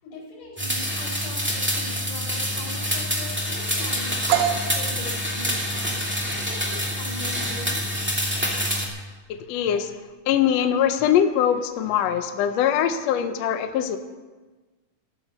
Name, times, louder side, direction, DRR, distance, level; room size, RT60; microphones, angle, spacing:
voice 1, 0.0-7.9, left 2 dB, 90° left, -4 dB, 5.9 m, -41 dB
sound 1, 0.6-8.9, equal, 5° right, 1.8 m, -27 dB
sound 2, 4.3-11.9, right 9 dB, 75° right, 2.5 m, -32 dB
voice 2, 9.5-9.9 10.3-14.0, left 9 dB, 70° left, 8 dB, 1.7 m, -22 dB
13.0 x 13.0 x 6.6 m, 1.3 s
omnidirectional pair, 3.6 m